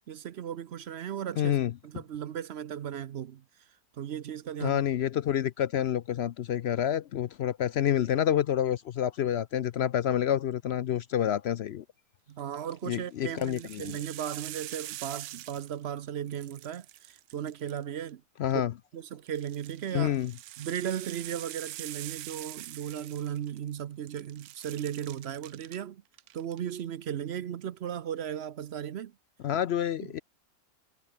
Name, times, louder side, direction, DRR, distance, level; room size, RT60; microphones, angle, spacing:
voice 1, 0.1-1.6 1.8-3.4 3.9-4.8 12.3-18.2 18.9-20.1 20.6-26.0 26.3-29.1 30.0-30.1, right 9 dB, 55° right, 0.8 m, -36 dB
voice 2, 1.4-1.7 4.6-11.8 12.9-13.9 18.4-18.7 19.9-20.3 29.4-30.2, left 10 dB, 65° left, 0.6 m, -28 dB
sound 1, 12.4-12.7 13.2-16.0 16.3-18.1 19.3-23.8 24.1-25.8 26.1-26.6, right 14 dB, 80° right, 1.1 m, -44 dB
omnidirectional pair, 1.6 m